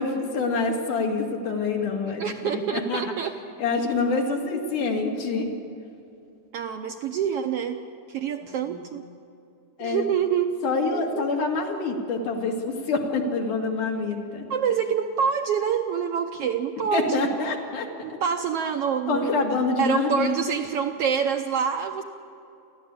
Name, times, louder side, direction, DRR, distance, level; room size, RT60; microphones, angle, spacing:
voice 1, 0.0-2.6 2.9-3.0 3.6-5.5 8.7-8.9 9.8-10.0 10.6-14.5 16.9-17.9 19.1-20.6, left 4 dB, 85° left, 1 dB, 3.8 m, -26 dB
voice 2, 2.2-3.3 6.5-7.8 8.1-9.1 9.8-10.6 10.9-11.3 14.5-17.3 18.0-19.4 19.8-22.0, right 7 dB, 75° right, 5 dB, 1.4 m, -26 dB
29.0 x 12.5 x 8.5 m, 2.6 s
omnidirectional pair, 3.5 m